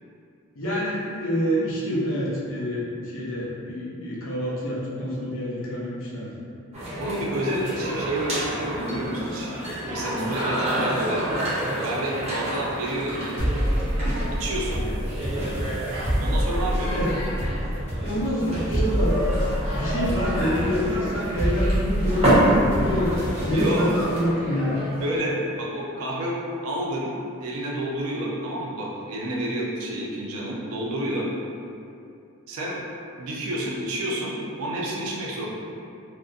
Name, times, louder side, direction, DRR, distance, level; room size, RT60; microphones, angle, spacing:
voice 1, 0.6-6.3 10.7-10.9 16.9-17.2 18.0-19.5 19.7-23.1 23.5-24.8, equal, 65° left, -7 dB, 0.6 m, -27 dB
sound 1, 6.7-25.2, right 1 dB, 30° right, 0.6 m, -28 dB
voice 2, 7.0-9.5 9.9-11.2 11.7-13.4 14.0-14.8 16.2-16.9 23.5-23.9 25.0-26.4 26.6-27.1 27.4-31.3 32.5-32.8 33.2-35.5, right 1 dB, 80° right, -4 dB, 0.5 m, -29 dB
sound 2, 13.4-24.0, equal, 10° left, 1.0 m, -27 dB
2.5 x 2.1 x 2.3 m, 2.5 s
head